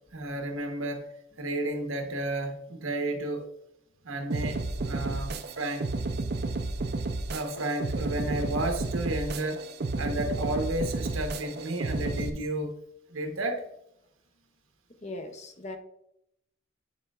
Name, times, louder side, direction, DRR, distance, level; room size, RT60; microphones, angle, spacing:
voice 1, 0.1-1.1 1.4-3.5 4.0-5.9 7.3-9.6 10.0-12.7 13.1-13.6, right 1 dB, 85° right, 5 dB, 1.0 m, -32 dB
sound 1, 4.3-12.3, right 3 dB, 50° right, 0.5 m, -32 dB
voice 2, 15.0-15.8, left 2 dB, 35° left, 6 dB, 0.6 m, -39 dB
9.8 x 4.3 x 2.4 m, 0.79 s
head